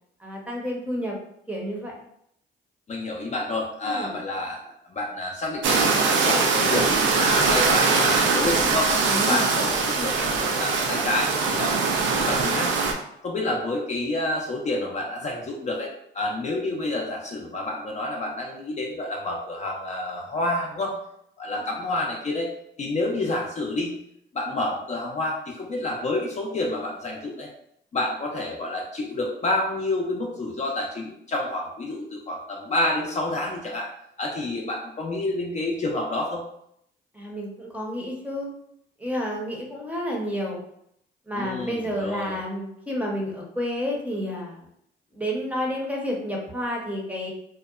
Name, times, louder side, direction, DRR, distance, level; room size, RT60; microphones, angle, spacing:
voice 1, 0.2-1.2 1.5-2.0 3.8-4.2 9.1-9.4 21.4-21.7 37.1-38.5 39.0-40.6 41.3-44.6 45.1-47.3, equal, 5° right, -2 dB, 0.7 m, -30 dB
voice 2, 2.9-4.6 4.9-8.9 9.3-11.8 12.3-12.7 13.2-20.9 21.4-22.5 22.8-23.9 24.3-27.5 27.9-33.9 34.2-36.4 41.3-42.4, left 2 dB, 35° left, -1 dB, 0.5 m, -29 dB
sound 1, 5.6-12.9, right 4 dB, 75° right, 0.5 m, -22 dB
2.8 x 2.0 x 2.3 m, 0.73 s
cardioid pair, 90°, 20 cm